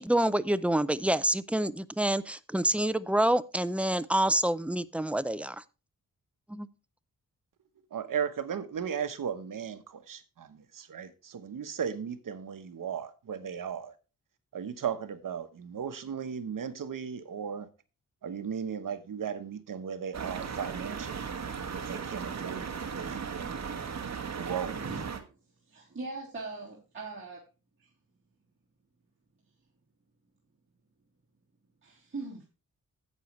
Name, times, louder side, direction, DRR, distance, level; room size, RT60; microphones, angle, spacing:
voice 1, 0.0-5.6 6.5-6.7, right 1 dB, 5° right, 0.4 m, -27 dB
voice 2, 7.9-13.9 14.5-17.7 18.2-21.3 21.7-23.5 24.3-24.8, right 7 dB, 70° right, 1.1 m, -36 dB
sound 1, 20.1-25.2, right 6 dB, 50° right, 1.4 m, -37 dB
voice 3, 25.7-27.4 31.8-32.4, right 3 dB, 35° right, 3.3 m, -40 dB
11.0 x 8.4 x 3.2 m
wide cardioid pair, 100°, 34 cm